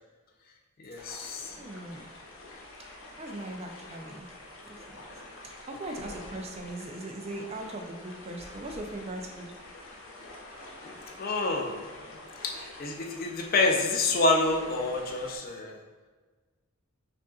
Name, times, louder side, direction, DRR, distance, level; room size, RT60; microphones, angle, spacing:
voice 1, 0.8-1.6 11.2-11.9 12.4-15.8, left 2 dB, 45° left, 2 dB, 0.4 m, -28 dB
sound 1, 0.9-15.4, left 2 dB, 70° left, 0.7 m, -47 dB
voice 2, 1.4-2.0 3.2-4.3 4.9-5.1 5.4-9.5, right 1 dB, 30° right, 2 dB, 0.4 m, -39 dB
5.3 x 2.5 x 2.3 m, 1.4 s
head